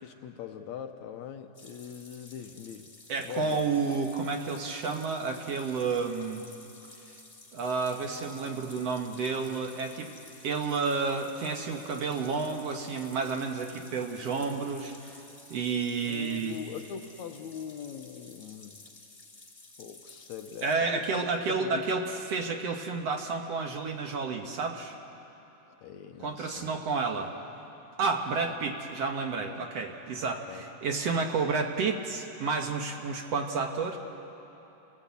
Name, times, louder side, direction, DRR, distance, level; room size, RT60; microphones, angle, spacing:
voice 1, 0.0-2.9 3.2-3.8 16.0-18.8 19.8-21.9 25.7-26.8 30.5-30.6, left 8 dB, 75° left, 6 dB, 2.0 m, -42 dB
sound 1, 1.5-20.7, left 2 dB, 15° left, 2.0 m, -53 dB
voice 2, 3.1-6.5 7.5-10.1 10.4-15.2 15.5-16.6 20.6-25.0 26.2-27.3 28.0-34.0, right 4 dB, 60° right, 3 dB, 2.1 m, -31 dB
28.5 x 17.5 x 8.3 m, 3.0 s
omnidirectional pair, 3.6 m